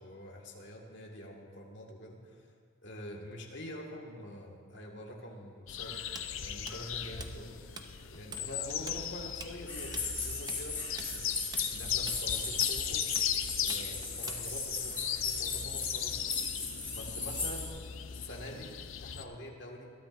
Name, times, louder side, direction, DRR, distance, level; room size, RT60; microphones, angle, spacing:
voice 1, 0.0-2.4 2.8-13.0 13.6-16.2 16.9-17.8 18.1-18.7 19.0-19.9, left 1 dB, 55° left, 0 dB, 1.9 m, -46 dB
sound 1, 5.7-19.2, left 9 dB, 75° left, 0.6 m, -37 dB
Tools, 6.2-7.9 8.1-8.5 8.7-14.8, right 4 dB, 20° right, 0.6 m, -46 dB
sound 2, 9.7-17.7, left 3 dB, 10° left, 2.8 m, -37 dB
21.0 x 12.5 x 2.6 m, 2.4 s
head